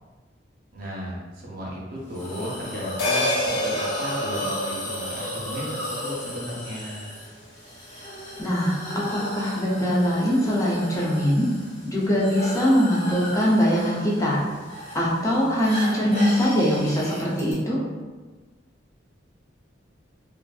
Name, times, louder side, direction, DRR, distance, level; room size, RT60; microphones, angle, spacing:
voice 1, 0.7-7.0, equal, 55° right, -4 dB, 0.6 m, -34 dB
Hiss, 2.1-17.5, equal, 35° left, 0.9 m, -34 dB
sound 1, 3.0-7.7 8.0-8.1, left 2 dB, 65° left, 0.6 m, -31 dB
voice 2, 8.4-11.5 11.8-14.4 14.9-17.8, equal, 20° left, -5 dB, 0.4 m, -22 dB
2.5 x 2.4 x 2.3 m, 1.3 s
head